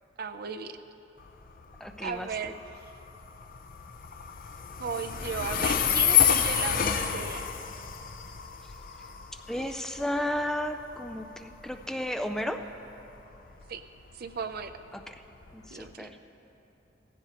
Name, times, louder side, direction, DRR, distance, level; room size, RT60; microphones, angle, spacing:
voice 1, 0.2-0.8 2.0-2.9 4.8-7.5 13.7-13.8 14.1-14.8 15.7-16.1, right 6 dB, 55° right, 9 dB, 0.5 m, -36 dB
Train, 1.2-15.9, left 8 dB, 50° left, 0.6 m, -30 dB
voice 2, 1.8-2.3 9.5-12.6 14.9-15.1 15.5-16.2, left 1 dB, 5° left, 6 dB, 0.3 m, -33 dB
17.0 x 15.0 x 2.9 m, 2.9 s
head